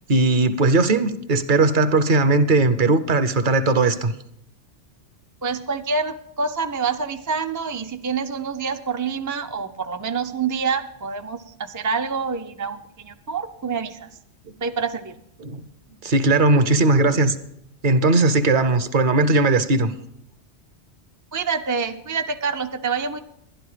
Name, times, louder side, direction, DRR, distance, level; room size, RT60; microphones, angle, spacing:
voice 1, 0.1-4.1 15.4-15.6 16.0-17.4 17.8-19.9, right 3 dB, 50° right, 11 dB, 0.8 m, -18 dB
voice 2, 5.4-14.1 14.6-15.1 21.3-23.2, right 5 dB, 30° right, 6 dB, 0.3 m, -27 dB
11.5 x 11.5 x 4.9 m, 0.74 s
omnidirectional pair, 1.1 m